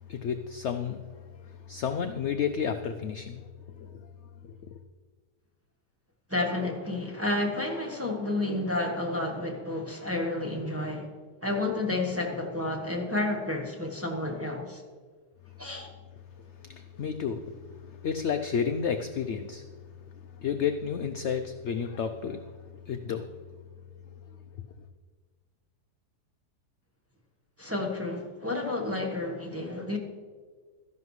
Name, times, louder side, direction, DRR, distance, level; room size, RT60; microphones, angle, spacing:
voice 1, 0.1-1.0 1.3-3.4 3.8-4.1 4.4-4.6 16.4-19.7 20.4-22.5 22.8-23.3 24.1-24.4, left 7 dB, 75° left, 8 dB, 0.6 m, -32 dB
voice 2, 6.3-11.1 11.4-14.8 15.6-15.9 27.6-30.0, left 2 dB, 10° right, 0 dB, 1.0 m, -30 dB
13.0 x 11.0 x 3.2 m, 1.5 s
omnidirectional pair, 1.7 m